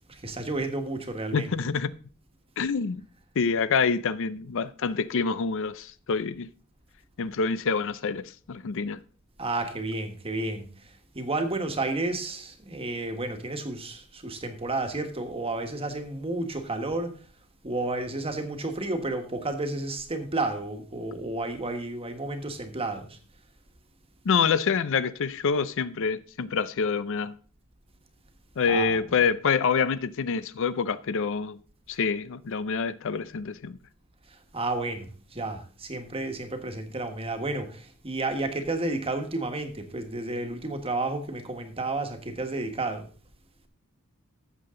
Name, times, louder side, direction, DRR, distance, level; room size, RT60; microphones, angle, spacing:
voice 1, 0.1-1.6 9.4-10.7 11.1-17.2 17.6-23.2 28.6-29.3 34.3-43.1, right 2 dB, 25° right, 1.5 m, -31 dB
voice 2, 1.3-1.9 2.6-3.0 3.4-6.5 7.2-9.0 24.2-27.3 28.6-31.6 31.9-33.8, left 5 dB, 60° left, 0.5 m, -26 dB
13.5 x 7.6 x 3.8 m
head